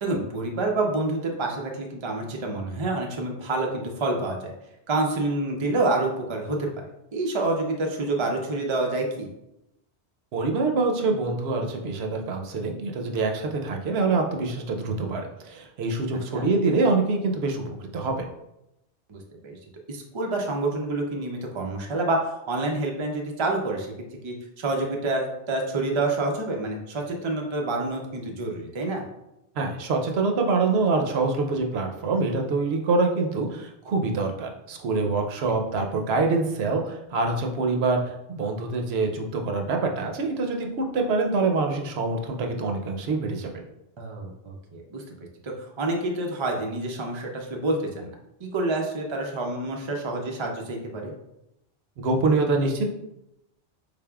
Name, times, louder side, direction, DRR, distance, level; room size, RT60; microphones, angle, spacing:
voice 1, 0.0-4.5 4.9-6.7 7.1-9.3 16.3-16.5 19.1-19.6 19.9-23.9 24.2-29.0 44.0-45.0 45.4-48.1 48.4-51.1, right 2 dB, 50° right, 0 dB, 0.3 m, -28 dB
voice 2, 10.3-18.2 29.6-38.0 38.3-43.5 52.0-52.9, right 3 dB, 70° right, 3 dB, 0.8 m, -25 dB
3.8 x 3.4 x 2.3 m, 0.86 s
omnidirectional pair, 1.1 m